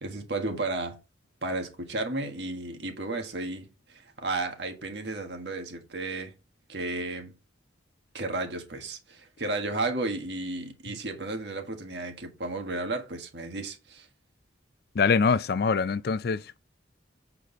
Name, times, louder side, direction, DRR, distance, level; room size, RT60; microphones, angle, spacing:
voice 1, 0.0-1.0 1.4-6.3 6.7-7.3 8.1-14.1, right 2 dB, 65° right, 1.6 m, -33 dB
voice 2, 14.9-16.6, left 5 dB, 55° left, 0.4 m, -24 dB
7.7 x 4.8 x 3.9 m
head